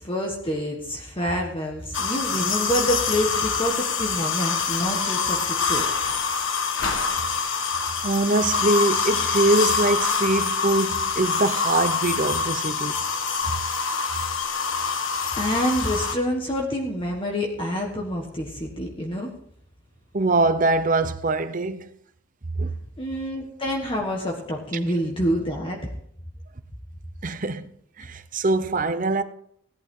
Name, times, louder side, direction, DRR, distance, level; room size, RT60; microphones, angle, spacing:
voice 1, 0.0-5.9 15.3-19.3 23.0-25.9, equal, 25° left, 1.5 m, -27 dB
sound 1, 1.9-16.2, left 5 dB, 70° left, 1.6 m, -25 dB
voice 2, 8.0-13.0 20.1-21.9 22.6-22.7 27.2-27.7 28.0-29.2, right 2 dB, 40° right, 0.8 m, -23 dB
17.0 x 11.5 x 3.8 m
head